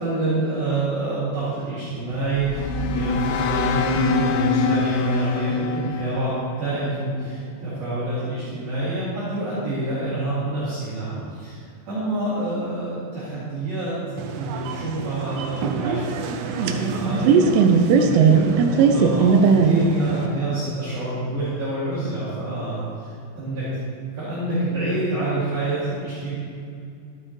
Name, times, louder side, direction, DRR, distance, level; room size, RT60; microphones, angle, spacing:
voice 1, 0.0-11.6 11.9-14.0 14.3-16.1 16.4-19.3 19.6-23.1 23.4-23.6 24.2-26.3, right 2 dB, 55° right, -12 dB, 3.6 m, -27 dB
sound 1, 2.0-7.3, left 4 dB, 80° left, 2.5 m, -25 dB
sound 2, 14.2-20.3, right 5 dB, 85° right, 2.5 m, -19 dB
12.0 x 7.8 x 3.0 m, 2.4 s
omnidirectional pair, 5.4 m